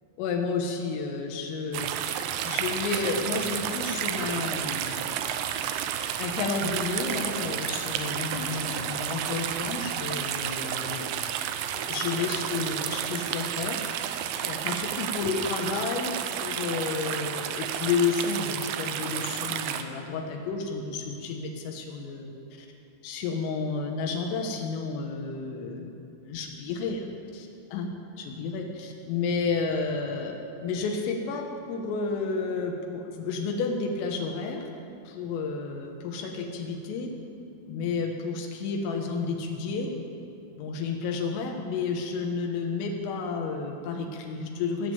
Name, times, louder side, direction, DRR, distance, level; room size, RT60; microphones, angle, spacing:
voice 1, 0.2-1.9 2.4-5.1 6.2-11.3 11.7-13.8 14.4-16.2 16.4-22.3 22.6-22.7 23.0-27.1 27.3-27.9 28.2-30.3 30.6-34.6 35.1-37.1 37.7-39.9 40.6-44.9, left 4 dB, 80° left, 2 dB, 3.7 m, -31 dB
sound 1, 1.7-19.8, right 10 dB, 90° right, 2.7 m, -31 dB
17.5 x 7.2 x 7.8 m, 2.7 s
omnidirectional pair, 5.9 m